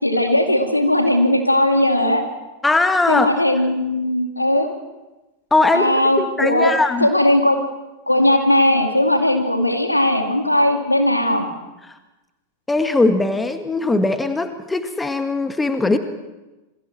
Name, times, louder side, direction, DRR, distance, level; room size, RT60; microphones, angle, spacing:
voice 1, 0.0-2.2 3.1-4.7 5.7-6.7 7.0-7.6 8.1-11.5, left 1 dB, 85° left, 4 dB, 2.6 m, -18 dB
voice 2, 2.6-3.3 5.5-7.1 12.7-16.0, left 2 dB, 10° left, 9 dB, 1.6 m, -19 dB
27.0 x 22.0 x 4.5 m, 1.1 s
figure-of-eight pair, 90°, 0 cm